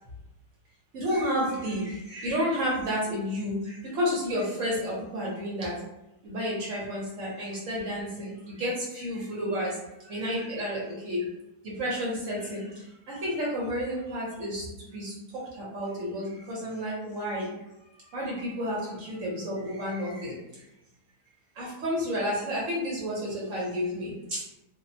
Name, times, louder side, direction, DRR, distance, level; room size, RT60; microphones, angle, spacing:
voice 1, 0.9-5.7 6.2-11.3 11.6-17.5 18.0-20.6 21.5-24.4, equal, 60° right, -5 dB, 1.0 m, -31 dB
2.8 x 2.0 x 2.6 m, 0.92 s
omnidirectional pair, 1.7 m